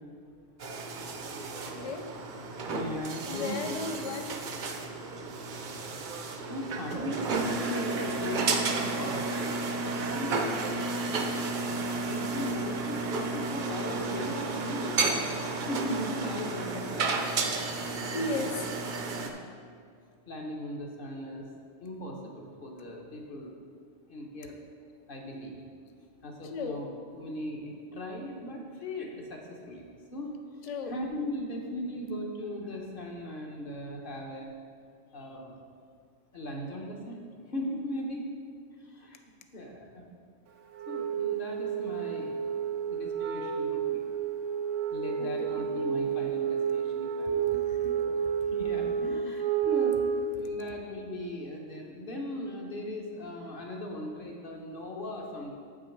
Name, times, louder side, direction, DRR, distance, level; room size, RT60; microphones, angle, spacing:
sound 1, 0.6-19.3, right 3 dB, 50° right, 0.6 m, -32 dB
voice 1, 1.7-2.1 3.3-4.4 18.1-18.7 26.4-26.8 30.7-30.9 45.5-45.7 47.5-47.9, left 3 dB, 75° left, 6 dB, 0.3 m, -35 dB
voice 2, 2.7-3.7 6.5-9.5 10.2-10.5 12.1-15.0 15.6-17.1 18.2-18.4 19.2-19.6 20.3-21.5 21.8-23.5 24.1-24.6 25.1-25.6 26.2-29.8 30.1-30.3 30.8-34.5 35.1-35.5 36.3-37.2 37.5-38.3 38.9-39.2 39.5-40.0 40.9-42.3 42.9-44.0 44.9-47.7 48.0-48.2 48.5-49.9 50.4-55.5, left 1 dB, 50° left, 1 dB, 1.1 m, -38 dB
Wind instrument woodwind instrument, 40.7-50.5, right 7 dB, 80° right, 1.0 m, -30 dB
7.5 x 6.1 x 4.6 m, 2.1 s
omnidirectional pair, 1.3 m